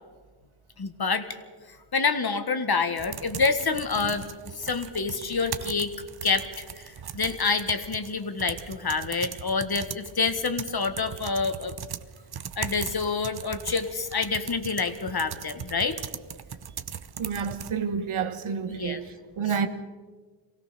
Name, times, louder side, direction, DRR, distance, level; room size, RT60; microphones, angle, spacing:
voice 1, 0.8-1.3 1.9-4.3 4.6-5.9 6.2-11.7 12.6-16.0 18.7-19.0, left 4 dB, 50° left, 1.7 m, -27 dB
sound 1, 3.0-17.7, right 7 dB, 50° right, 0.9 m, -39 dB
voice 2, 17.2-19.7, right 6 dB, 90° right, 1.4 m, -29 dB
24.0 x 17.0 x 6.8 m
cardioid pair, 65°, 48 cm